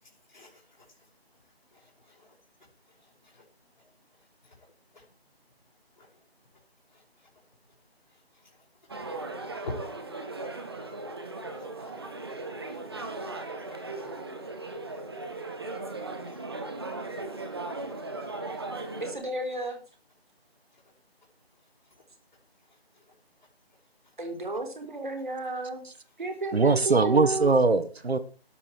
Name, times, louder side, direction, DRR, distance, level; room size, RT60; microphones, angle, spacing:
voice 1, 0.0-1.0 1.7-2.3 2.9-3.4 4.4-5.0 6.0-6.1 6.9-7.3 8.1-8.6 9.6-9.7 11.4-12.1 12.6-13.1 13.7-14.1 14.9-15.3 16.0-16.4 17.1-17.6 18.2-18.7 20.7-20.8 22.9-23.0, left 3 dB, 45° left, 5.1 m, -49 dB
sound 1, 8.9-19.1, right 2 dB, 25° right, 1.6 m, -37 dB
voice 2, 19.0-19.8 24.2-25.8 26.2-27.5, right 2 dB, 50° right, 4.0 m, -32 dB
voice 3, 26.5-28.2, right 3 dB, 75° right, 1.5 m, -21 dB
12.5 x 12.0 x 4.6 m
figure-of-eight pair, 175°, 32 cm